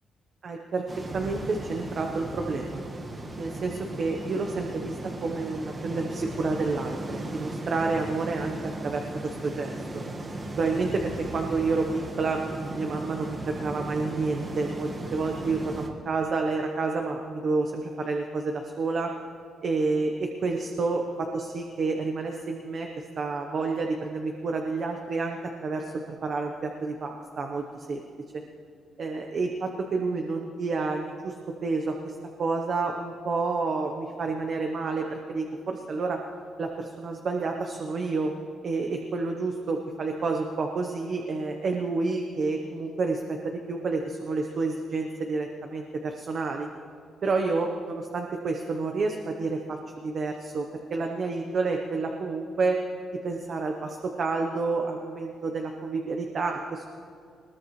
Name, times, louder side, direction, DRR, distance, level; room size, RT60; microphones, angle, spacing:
voice 1, 0.4-0.9 1.1-2.8 3.4-10.0 10.6-19.1 19.6-28.0 28.3-28.4 29.0-36.2 36.6-38.3 38.6-46.7 47.2-52.8 53.1-56.8, right 3 dB, 40° right, 3 dB, 0.9 m, -29 dB
sound 1, 0.9-15.9, right 1 dB, 25° right, 1.3 m, -36 dB
20.5 x 19.5 x 3.1 m, 2.3 s
cardioid pair, 175°, 0 cm